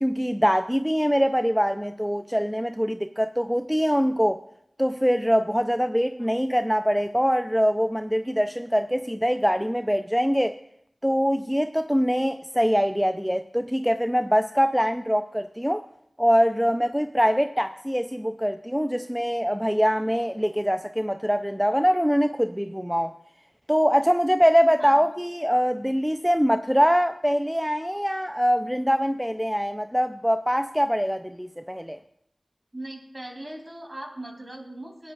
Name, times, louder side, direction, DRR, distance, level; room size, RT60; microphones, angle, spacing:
voice 1, 0.0-4.4 4.8-10.6 11.0-15.8 16.2-23.1 23.7-32.0, equal, ahead, 0.4 m, -23 dB
voice 2, 32.7-35.1, right 1 dB, 40° right, 2.9 m, -39 dB
21.0 x 9.9 x 2.3 m
wide cardioid pair, 50°, 0 cm